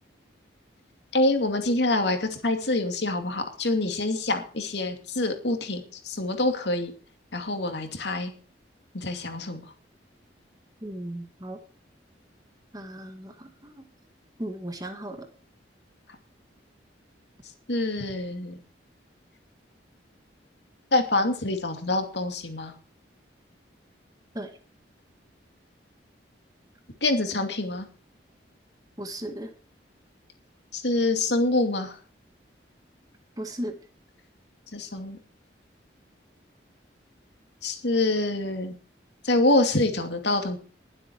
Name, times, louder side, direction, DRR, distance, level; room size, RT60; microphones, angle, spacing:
voice 1, 1.1-6.9 7.3-8.3 8.9-9.6 17.7-18.6 20.9-22.7 27.0-27.9 30.7-32.0 34.7-35.2 37.6-38.7 39.2-40.6, left 2 dB, 70° left, 6 dB, 2.5 m, -26 dB
voice 2, 10.8-11.6 12.7-13.8 14.4-15.3 24.3-24.5 29.0-29.5 33.4-33.8, right 1 dB, 20° right, 6 dB, 1.7 m, -36 dB
21.0 x 7.9 x 4.7 m, 0.40 s
head